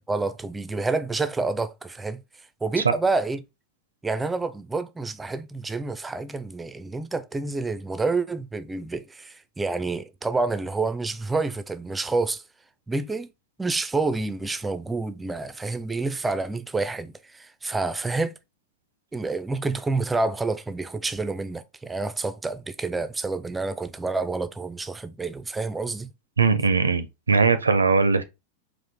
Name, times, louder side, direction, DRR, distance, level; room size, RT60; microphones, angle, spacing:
voice 1, 0.1-2.2 2.6-3.4 4.0-12.4 12.9-13.3 13.6-18.3 19.1-26.1, right 3 dB, 10° right, 0.4 m, -28 dB
voice 2, 26.4-28.2, right 4 dB, 75° right, 0.5 m, -20 dB
4.3 x 2.5 x 3.4 m
figure-of-eight pair, 90°, 0 cm